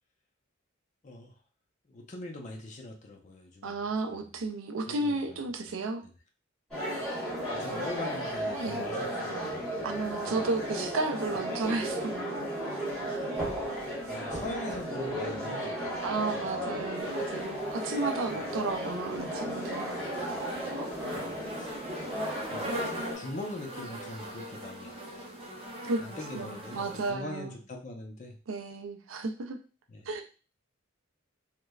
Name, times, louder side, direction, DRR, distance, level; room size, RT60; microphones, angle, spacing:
voice 1, 1.0-1.3 1.9-3.8 4.1-4.2 4.8-5.4 5.6-5.7 6.0-6.1 7.5-10.5 11.3-11.4 11.8-11.9 14.1-16.1 16.3-16.6 18.5-18.6 21.1-21.7 22.4-25.0 26.0-28.4 29.9-30.1, left 2 dB, 35° left, 2 dB, 0.5 m, -42 dB
voice 2, 3.6-6.0 8.6-8.8 9.8-12.0 16.0-20.0 25.8-26.0 26.3-27.6 28.5-29.6 30.1-30.2, right 3 dB, 80° right, 6 dB, 0.4 m, -33 dB
sound 1, 6.7-23.2, equal, 5° left, 1.3 m, -34 dB
sound 2, 17.0-27.1, right 1 dB, 30° right, 0.6 m, -42 dB
3.1 x 2.1 x 2.3 m, 0.35 s
head